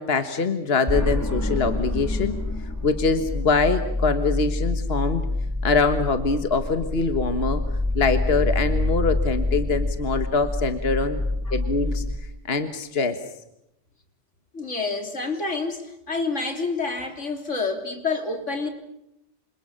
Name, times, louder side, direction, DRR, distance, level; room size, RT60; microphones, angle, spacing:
voice 1, 0.0-2.3 2.8-5.2 5.6-7.6 8.0-11.2 11.5-12.0 12.5-13.2, left 4 dB, 55° left, 8 dB, 1.7 m, -23 dB
sound 1, 0.9-12.1, left 2 dB, 15° left, 1.8 m, -26 dB
voice 2, 14.5-18.7, left 3 dB, 90° left, 5 dB, 3.7 m, -28 dB
28.5 x 27.0 x 6.7 m, 0.80 s
omnidirectional pair, 1.2 m